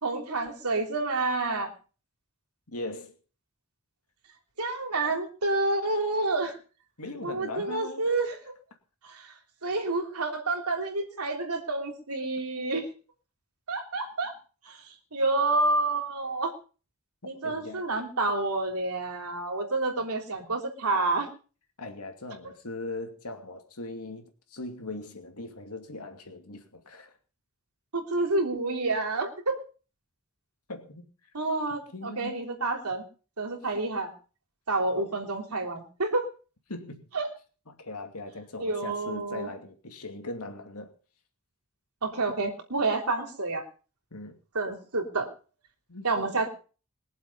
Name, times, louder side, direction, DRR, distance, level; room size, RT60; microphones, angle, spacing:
voice 1, 0.0-1.7 4.6-6.6 7.2-8.4 9.0-9.3 9.6-12.9 13.7-14.3 14.6-14.8 15.1-16.5 17.2-21.3 27.9-29.6 31.3-33.0 33.4-34.1 34.7-36.3 37.1-37.3 38.6-39.5 42.0-43.6 44.5-45.3 46.0-46.5, right 2 dB, 85° right, 3.3 m, -29 dB
voice 2, 2.7-3.2 5.0-5.1 7.0-8.2 17.2-17.9 20.0-20.1 21.8-27.2 30.7-31.1 31.9-32.4 35.0-35.1 36.7-37.0 37.7-40.9 44.1-44.4 45.9-46.1, left 2 dB, 80° left, 2.6 m, -40 dB
22.0 x 7.5 x 5.4 m
head